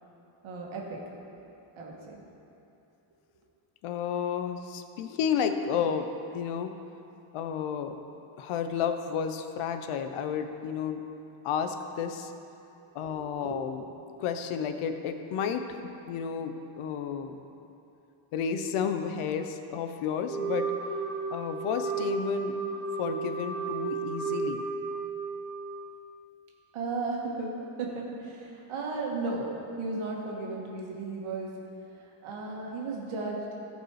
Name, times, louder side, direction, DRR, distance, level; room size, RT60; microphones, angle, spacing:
voice 1, 0.4-1.0 1.8-2.2 13.0-13.2 13.4-13.6 26.7-31.6 32.2-33.5, right 3 dB, 70° right, -2 dB, 2.0 m, -35 dB
voice 2, 3.8-6.7 7.3-8.0 8.4-11.0 11.4-12.3 12.9-13.8 14.2-17.4 18.3-22.6 23.0-24.6, left 7 dB, 90° left, 7 dB, 0.9 m, -32 dB
Wind instrument woodwind instrument, 20.3-25.9, right 4 dB, 25° right, 2.7 m, -33 dB
16.5 x 5.5 x 4.8 m, 2.8 s
cardioid pair, 150°, 49 cm